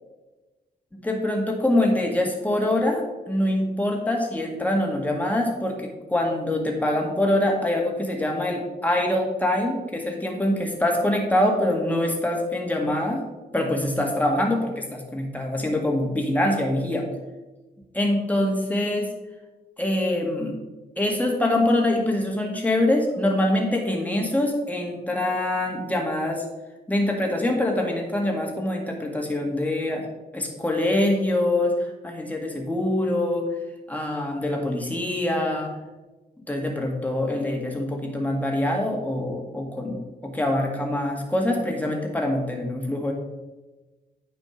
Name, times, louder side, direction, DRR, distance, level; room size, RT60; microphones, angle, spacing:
voice 1, 0.9-13.2 13.5-17.1 17.9-19.1 19.8-20.5 21.0-26.4 26.9-30.1 30.3-31.7 32.0-33.5 33.9-35.7 36.5-43.1, left 1 dB, 10° left, 0 dB, 2.0 m, -24 dB
9.1 x 5.2 x 5.2 m, 1.1 s
cardioid pair, 95°, 17 cm